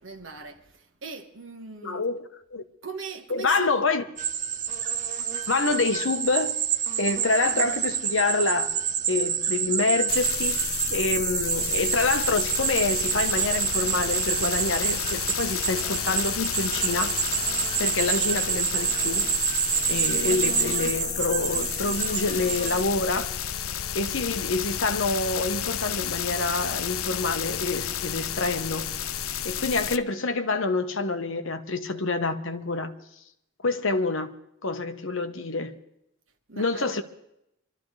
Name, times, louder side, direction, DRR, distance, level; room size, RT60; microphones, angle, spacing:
voice 1, 0.0-2.0 2.8-3.7 36.5-37.0, right 5 dB, 60° right, 1.5 m, -40 dB
voice 2, 1.8-2.2 2.5-2.6 3.3-4.0 5.5-6.6 7.0-8.7 9.1-10.6 10.9-17.1 17.5-19.3 19.9-23.3 23.9-28.9 29.4-32.9 33.6-34.4 34.6-35.8 36.6-37.0, left 3 dB, 65° left, 1.1 m, -27 dB
sound 1, 4.2-22.8, right 8 dB, 35° right, 0.8 m, -28 dB
sound 2, 10.1-30.0, left 9 dB, 90° left, 0.6 m, -31 dB
25.0 x 13.0 x 3.3 m
head